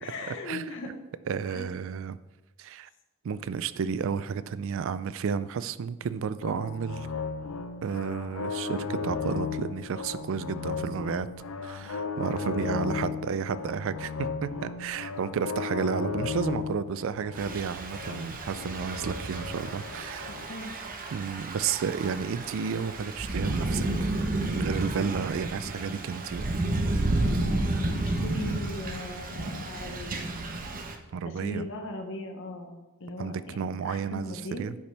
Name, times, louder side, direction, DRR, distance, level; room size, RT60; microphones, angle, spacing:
voice 1, 0.0-0.9 1.5-1.7 12.6-13.1 20.3-20.8 27.1-30.2 31.3-32.7 33.0-34.7, left 1 dB, 60° left, 3 dB, 1.0 m, -38 dB
voice 2, 1.3-2.2 2.6-2.9 3.2-7.1 7.8-11.3 11.6-20.3 21.1-24.1 24.6-26.9 31.1-31.6 33.2-34.7, right 6 dB, 65° right, 16 dB, 0.4 m, -32 dB
sound 1, 6.4-20.5, left 5 dB, 80° left, 0.6 m, -35 dB
Thunder / Rain, 17.4-31.0, right 2 dB, 40° right, 0.8 m, -31 dB
10.0 x 5.7 x 3.4 m, 1.1 s
head